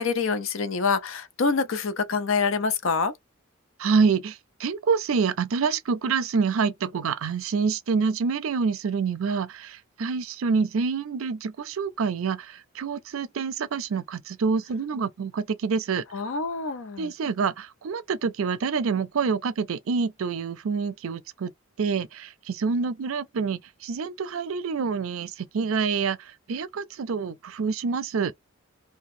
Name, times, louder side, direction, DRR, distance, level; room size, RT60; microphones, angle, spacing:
voice 1, 0.0-3.1 16.1-17.1, left 4 dB, 70° left, 0.6 m, -26 dB
voice 2, 3.8-16.0 17.0-21.5 21.8-28.3, right 5 dB, 75° right, 0.4 m, -27 dB
2.8 x 2.3 x 4.1 m
head